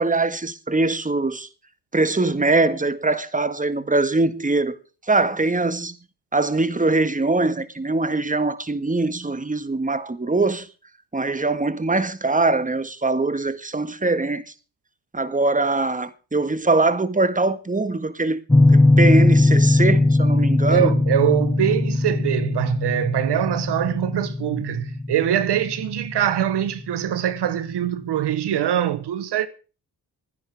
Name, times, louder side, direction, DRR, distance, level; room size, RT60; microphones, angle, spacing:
voice 1, 0.0-1.5 1.9-4.8 5.1-6.0 6.3-10.7 11.1-14.4 15.1-18.4 18.7-20.9, right 3 dB, 20° right, 1.7 m, -22 dB
sound 1, 18.5-27.2, left 2 dB, 10° left, 1.2 m, -19 dB
voice 2, 20.7-29.5, right 11 dB, 70° right, 1.2 m, -23 dB
25.5 x 10.0 x 3.6 m
supercardioid pair, 45°, 42 cm